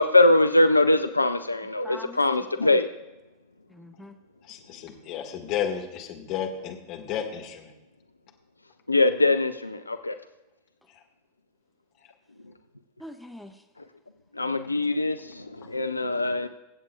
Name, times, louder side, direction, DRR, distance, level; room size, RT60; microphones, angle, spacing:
voice 1, 0.0-2.9 8.9-10.1 14.4-16.5, left 2 dB, 85° left, 9 dB, 0.4 m, -22 dB
voice 2, 1.8-2.8 3.7-4.2 13.0-13.6, left 1 dB, ahead, 6 dB, 0.6 m, -44 dB
voice 3, 4.5-7.7, left 9 dB, 40° left, 3 dB, 1.7 m, -32 dB
24.0 x 8.1 x 2.3 m, 1.0 s
figure-of-eight pair, 90°, 0 cm